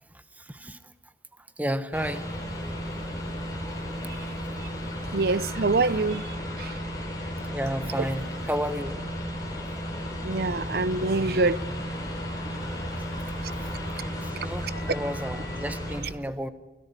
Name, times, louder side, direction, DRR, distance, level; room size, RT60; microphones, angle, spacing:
voice 1, 0.1-0.9 1.4-2.3 2.8-4.2 5.0-5.2 5.9-6.0 7.5-9.0 12.9-13.1 13.6-13.7 14.2-16.5, equal, 10° right, 1.0 m, -33 dB
sound 1, 1.9-16.0, equal, 20° left, 6.7 m, -34 dB
voice 2, 5.1-6.2 6.6-6.7 10.2-11.6 13.4-13.5, right 3 dB, 60° right, 0.7 m, -25 dB
23.0 x 17.0 x 8.3 m
head